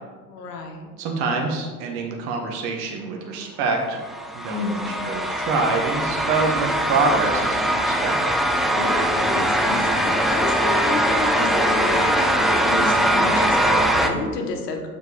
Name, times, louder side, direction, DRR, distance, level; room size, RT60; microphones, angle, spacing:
voice 1, 0.3-0.9 4.5-5.0 8.8-14.9, left 3 dB, 75° left, 3 dB, 1.2 m, -30 dB
voice 2, 1.0-4.0 4.3-8.2, right 3 dB, 55° right, 2 dB, 1.2 m, -25 dB
sound 1, 4.0-14.1, right 1 dB, ahead, 0.4 m, -21 dB
6.9 x 4.5 x 4.7 m, 1.5 s
hypercardioid pair, 75°, 47 cm